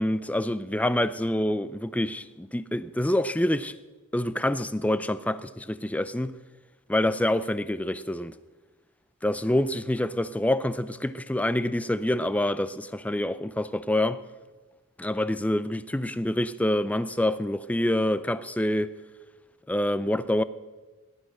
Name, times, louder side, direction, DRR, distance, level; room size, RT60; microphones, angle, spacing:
voice 1, 0.0-3.8 4.1-6.3 6.9-8.3 9.2-14.2 15.0-18.9 19.7-20.4, left 1 dB, 5° left, 0.4 m, -26 dB
18.5 x 11.5 x 6.3 m
head